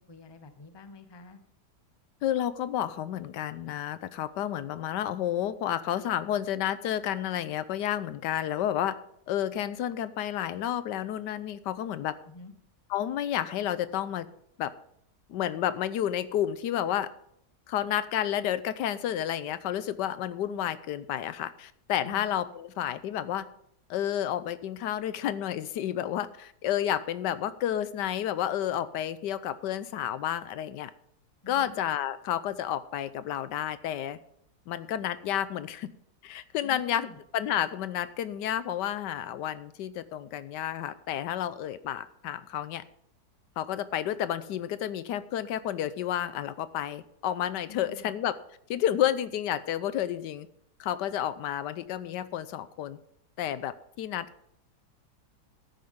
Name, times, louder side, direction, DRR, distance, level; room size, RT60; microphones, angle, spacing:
voice 1, 0.1-1.4 12.2-12.5 22.0-22.3 31.4-31.8 36.6-37.2 47.7-48.1, left 4 dB, 20° left, 9 dB, 0.7 m, -47 dB
voice 2, 2.2-9.0 9.3-12.1 12.9-14.3 14.6-14.7 15.3-17.1 17.7-23.5 23.9-30.9 31.5-34.2 34.7-35.9 36.2-37.1 37.3-42.8 43.6-48.3 48.7-50.5 50.8-53.0 53.4-54.5, left 11 dB, 85° left, 14 dB, 1.3 m, -31 dB
13.5 x 10.5 x 3.7 m, 0.72 s
omnidirectional pair, 1.8 m